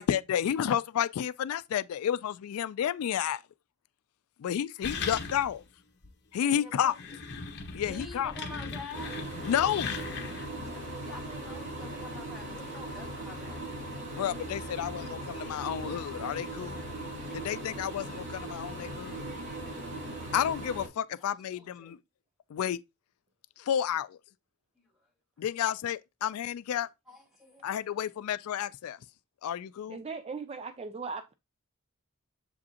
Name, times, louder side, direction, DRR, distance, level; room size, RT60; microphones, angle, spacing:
voice 1, 0.0-3.4 4.4-5.6 6.3-7.0 7.7-8.3 9.4-10.0 14.1-16.9 17.3-19.3 20.3-22.0 22.5-22.8 23.6-24.2 25.4-26.9 27.6-29.0 29.4-30.0, left 9 dB, 85° left, 0.3 m, -31 dB
sound 1, 4.8-5.7 6.0-6.1 6.8-10.6, left 5 dB, 50° left, 1.1 m, -38 dB
voice 2, 6.4-7.1 7.8-9.1 10.6-13.6 14.9-16.5 17.2-17.5 18.5-19.9 21.5-22.0 24.7-25.1 27.1-27.6, left 2 dB, ahead, 2.9 m, -48 dB
sound 2, 8.9-20.9, right 1 dB, 55° right, 2.6 m, -39 dB
voice 3, 29.9-31.3, right 4 dB, 25° right, 0.3 m, -38 dB
7.1 x 5.1 x 2.8 m
head